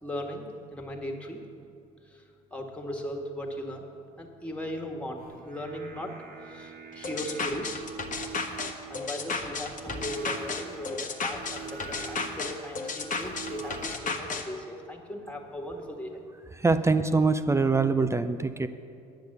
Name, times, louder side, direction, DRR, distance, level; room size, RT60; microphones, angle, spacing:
voice 1, 0.0-1.4 2.1-2.2 2.5-3.9 4.2-6.1 6.4-7.8 8.9-16.2, equal, 5° left, 2 dB, 1.8 m, -37 dB
Singing, 5.2-14.0, right 6 dB, 45° right, 1.3 m, -44 dB
sound 1, 7.0-14.4, left 4 dB, 40° left, 1.2 m, -33 dB
voice 2, 16.6-18.7, right 3 dB, 15° right, 10 dB, 0.6 m, -24 dB
10.5 x 6.8 x 7.9 m, 2.5 s
hypercardioid pair, 60°, 20 cm